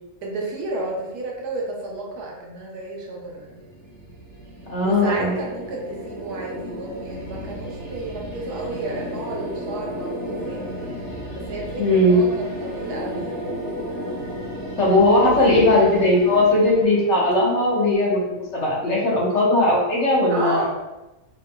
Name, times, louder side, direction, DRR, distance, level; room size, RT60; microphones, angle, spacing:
voice 1, 0.2-3.6 4.8-10.6 11.3-13.5 15.2-15.5 20.3-20.7, right 2 dB, 80° right, -2 dB, 1.3 m, -32 dB
sound 1, 3.2-18.3, equal, 20° right, 1.0 m, -34 dB
voice 2, 4.7-5.4 11.8-12.2 14.8-20.6, left 1 dB, 50° left, -5 dB, 1.1 m, -18 dB
4.6 x 2.9 x 2.2 m, 1.0 s
omnidirectional pair, 1.6 m